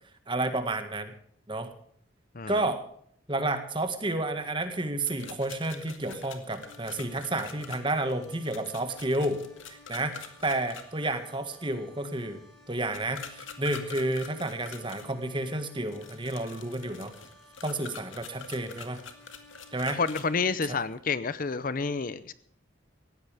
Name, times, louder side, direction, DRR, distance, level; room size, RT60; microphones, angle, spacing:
voice 1, 0.3-1.1 1.5-1.7 2.5-2.8 3.3-9.4 9.7-12.4 12.7-17.1 17.6-19.0 19.7-20.0, right 2 dB, 25° right, 8 dB, 1.7 m, -31 dB
sound 1, 5.0-10.8 12.9-15.1 15.9-20.2, left 6 dB, 75° left, 2.2 m, -45 dB
sound 2, 6.6-20.1, left 1 dB, 5° left, 7.0 m, -56 dB
voice 2, 19.9-22.3, left 4 dB, 45° left, 15 dB, 0.6 m, -29 dB
19.0 x 15.5 x 3.5 m, 0.64 s
head